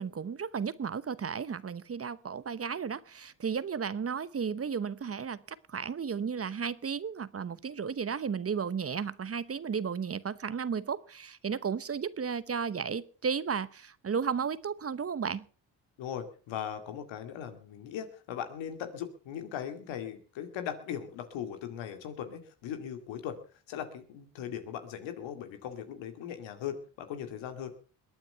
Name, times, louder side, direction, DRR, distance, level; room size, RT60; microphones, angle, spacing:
voice 1, 0.0-15.4, right 6 dB, 30° right, 17 dB, 0.9 m, -34 dB
voice 2, 16.0-23.4 23.7-27.7, left 9 dB, 85° left, 8 dB, 2.4 m, -39 dB
22.0 x 9.1 x 5.6 m, 0.40 s
supercardioid pair, 70°, 44 cm